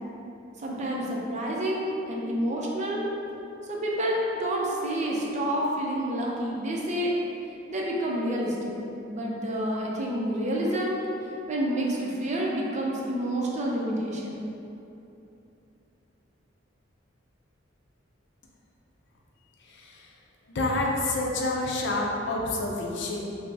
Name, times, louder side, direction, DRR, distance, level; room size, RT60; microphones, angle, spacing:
voice 1, 0.6-3.0 3.7-7.1 7.7-8.8 9.1-11.0 11.5-14.4, right 1 dB, 40° right, -3 dB, 0.5 m, -28 dB
voice 2, 19.6-20.1 20.5-23.4, left 2 dB, 65° left, -1 dB, 0.5 m, -28 dB
5.4 x 2.0 x 2.7 m, 2.8 s
head